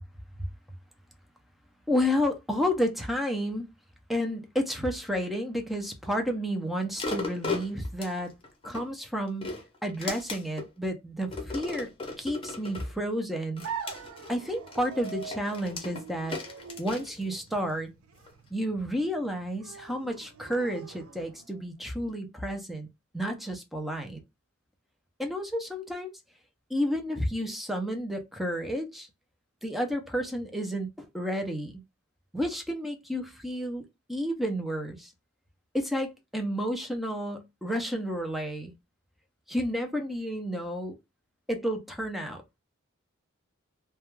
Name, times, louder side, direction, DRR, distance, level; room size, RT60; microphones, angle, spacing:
voice 1, 1.9-3.7 4.1-8.3 8.6-9.5 9.8-11.9 12.2-13.6 14.3-16.4 16.8-17.9 18.5-22.9 23.1-24.2 25.2-26.1 26.7-29.1 29.6-31.8 32.3-33.8 34.1-35.1 35.7-38.7 39.5-40.9 41.5-42.4, equal, ahead, 0.4 m, -31 dB
sound 1, 7.0-8.9 9.3-10.7 11.3-12.9 13.6-17.8 18.3-18.4, left 3 dB, 25° left, 0.7 m, -37 dB
sound 2, 13.6-21.6, right 6 dB, 90° right, 0.4 m, -44 dB
2.2 x 2.2 x 3.0 m
head